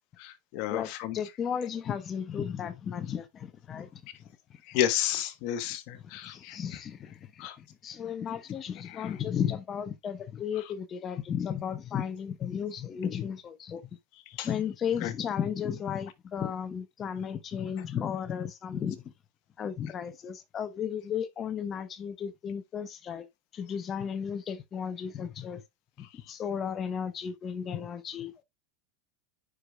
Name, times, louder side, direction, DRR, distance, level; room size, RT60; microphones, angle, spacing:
voice 1, 0.2-1.2 4.7-6.6 7.4-7.6 8.9-9.1 10.6-10.7 14.4-14.5 15.0-15.1, left 12 dB, 55° left, 1.2 m, -32 dB
voice 2, 0.7-4.0 6.2-13.8 14.4-19.0 19.6-23.3 23.5-25.6 26.0-28.4, left 8 dB, 30° left, 1.1 m, -34 dB
9.8 x 4.9 x 2.3 m
supercardioid pair, 130°, 0 cm